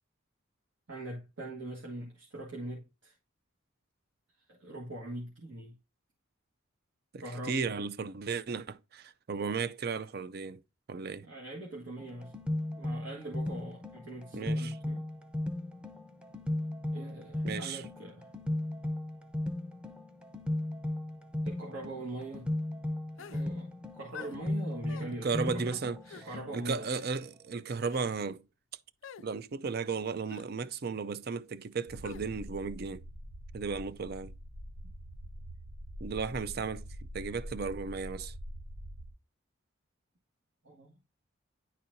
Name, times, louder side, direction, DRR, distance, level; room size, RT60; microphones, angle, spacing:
voice 1, 0.9-3.1 4.5-5.7 7.2-7.6 11.2-12.3 12.8-15.1 16.9-18.3 21.4-22.5 23.3-25.8 26.1-26.9 40.6-40.9, right 1 dB, 65° right, 1.6 m, -42 dB
voice 2, 7.1-10.6 10.9-11.3 14.3-14.8 17.4-17.8 25.0-26.0 26.5-28.4 29.2-33.0 33.5-34.3 36.0-36.8 37.1-38.3, right 5 dB, 50° right, 0.5 m, -35 dB
sound 1, 12.0-26.8, left 1 dB, 5° right, 0.7 m, -36 dB
sound 2, 23.2-23.5 24.1-24.4 24.9-25.1 26.0-26.3 26.8-27.1 27.8-28.1 29.0-29.3 30.3-30.5 32.0-32.3, left 7 dB, 70° left, 0.4 m, -47 dB
sound 3, 31.9-39.1, equal, 80° right, 1.0 m, -45 dB
10.0 x 4.2 x 2.7 m
head